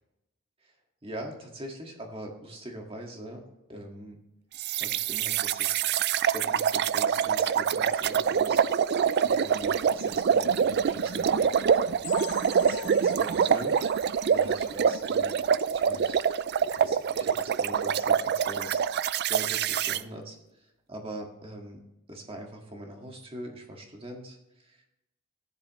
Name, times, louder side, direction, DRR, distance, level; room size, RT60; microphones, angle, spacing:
voice 1, 1.0-3.4 3.7-4.2 4.8-5.8 6.3-8.6 9.2-13.8 14.3-15.3 15.7-16.2 16.7-21.8 22.1-24.9, right 1 dB, 25° right, 2 dB, 1.8 m, -42 dB
sound 1, 4.6-20.0, right 7 dB, 45° right, 0.3 m, -25 dB
sound 2, 12.0-15.7 16.0-16.2 16.6-16.7 17.2-17.3, left 9 dB, 75° left, 1.3 m, -44 dB
14.0 x 10.5 x 3.1 m, 0.93 s
head